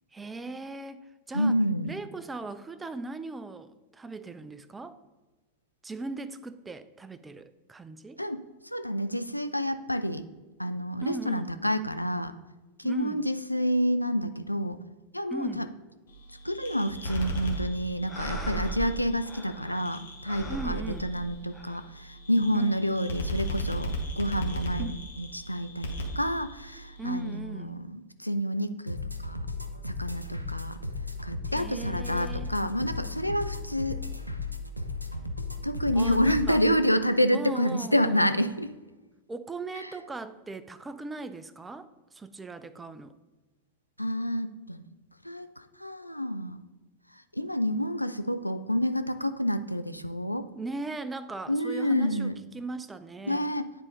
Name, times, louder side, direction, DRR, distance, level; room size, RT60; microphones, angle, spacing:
voice 1, 0.1-1.6 1.8-5.0 5.8-8.2 11.0-11.5 12.8-13.2 15.3-15.6 20.5-21.1 22.5-22.8 24.8-25.0 27.0-27.8 31.6-32.5 35.9-36.6 37.3-38.2 39.3-43.1 50.5-53.5, right 3 dB, 10° right, 13 dB, 0.4 m, -38 dB
voice 2, 1.3-1.9 8.2-10.3 10.6-12.3 12.8-14.8 15.1-15.7 16.4-29.5 29.9-30.8 31.2-34.0 35.6-38.7 39.7-39.9 44.0-44.9 45.2-46.6 47.1-50.5 51.5-52.3 53.3-53.7, equal, 90° left, 10 dB, 0.3 m, -29 dB
sound 1, 16.1-27.3, equal, 65° left, 1.2 m, -37 dB
sound 2, 17.0-17.7 18.1-19.9 20.3-21.8, right 3 dB, 5° left, 1.0 m, -38 dB
sound 3, 28.9-36.7, left 3 dB, 90° right, 0.5 m, -35 dB
9.6 x 3.6 x 3.9 m, 1.2 s
figure-of-eight pair, 90°, 0 cm